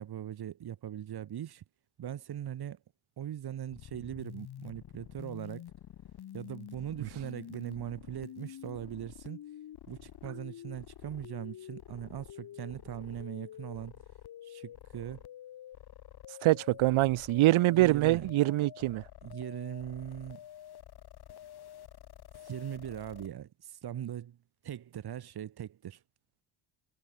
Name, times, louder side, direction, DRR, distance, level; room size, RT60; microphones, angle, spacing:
voice 1, 0.0-1.6 2.0-2.8 3.2-5.6 6.3-9.4 9.9-13.9 14.4-15.2 17.7-18.3 19.2-20.4 22.4-24.4 24.6-26.0, right 10 dB, 50° right, 7.4 m, -40 dB
sound 1, 3.7-23.3, left 11 dB, 50° left, 3.7 m, -49 dB
voice 2, 16.4-19.0, right 17 dB, 80° right, 1.8 m, -24 dB
cardioid pair, 155°, 48 cm